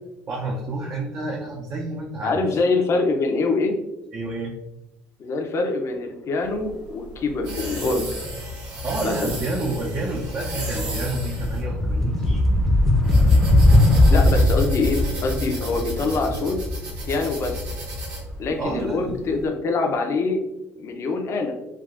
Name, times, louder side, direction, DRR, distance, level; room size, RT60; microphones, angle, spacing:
voice 1, 0.3-2.4 4.1-4.5 8.8-12.4 18.6-19.2, right 2 dB, 40° right, -2 dB, 0.5 m, -29 dB
voice 2, 2.2-3.8 5.2-8.1 9.0-9.3 13.8-16.6 17.0-17.7 18.4-20.4 20.8-21.6, left 3 dB, 45° left, 4 dB, 0.6 m, -24 dB
sound 1, 6.4-19.4, equal, 80° right, 1.1 m, -33 dB
sound 2, 9.5-9.6 9.8-18.7, left 1 dB, 5° left, 0.6 m, -20 dB
3.5 x 2.3 x 2.4 m, 0.95 s
supercardioid pair, 85°, 6 cm